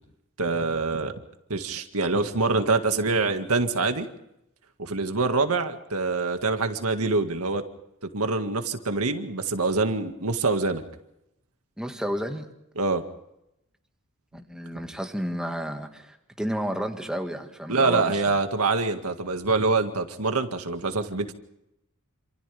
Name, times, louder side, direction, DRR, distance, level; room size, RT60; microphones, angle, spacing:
voice 1, 0.4-1.1 1.5-4.1 4.8-7.6 8.1-10.8 12.8-13.0 17.7-21.3, right 3 dB, 75° right, 6 dB, 2.0 m, -25 dB
voice 2, 11.8-12.5 14.3-18.2, equal, 5° right, 4 dB, 1.9 m, -31 dB
28.5 x 27.0 x 3.5 m, 0.85 s
head